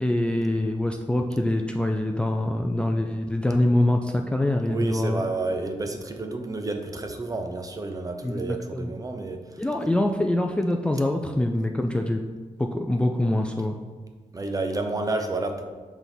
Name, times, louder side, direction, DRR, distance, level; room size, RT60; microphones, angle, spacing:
voice 1, 0.0-5.2 8.2-8.9 9.6-12.2 12.6-13.7, left 1 dB, 10° left, 3 dB, 0.4 m, -24 dB
voice 2, 4.7-9.4 14.3-15.6, right 2 dB, 30° right, 5 dB, 0.7 m, -30 dB
6.0 x 3.5 x 5.8 m, 1.4 s
wide cardioid pair, 105°, 12 cm